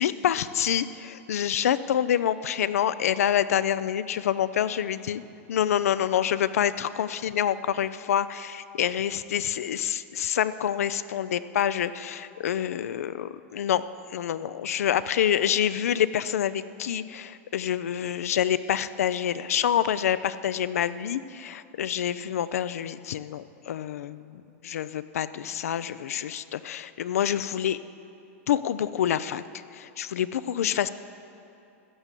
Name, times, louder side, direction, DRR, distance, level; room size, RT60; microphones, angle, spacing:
voice 1, 0.0-5.2 5.5-13.8 14.1-27.8 28.5-29.4 29.7-30.9, left 10 dB, 85° left, 15 dB, 0.5 m, -27 dB
14.0 x 7.6 x 8.3 m, 2.7 s
hypercardioid pair, 120°, 8 cm